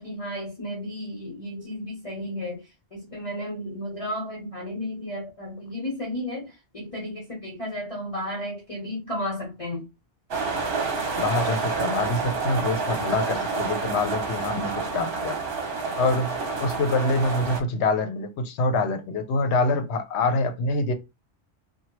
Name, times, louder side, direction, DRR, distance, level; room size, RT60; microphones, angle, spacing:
voice 1, 0.0-2.6 2.9-6.5 6.7-9.9, left 1 dB, 35° left, 1.0 m, -33 dB
sound 1, 10.3-17.6, right 4 dB, 60° right, 1.0 m, -28 dB
voice 2, 11.2-15.4 16.0-20.9, left 2 dB, 85° left, 0.9 m, -25 dB
2.8 x 2.3 x 3.1 m
omnidirectional pair, 1.1 m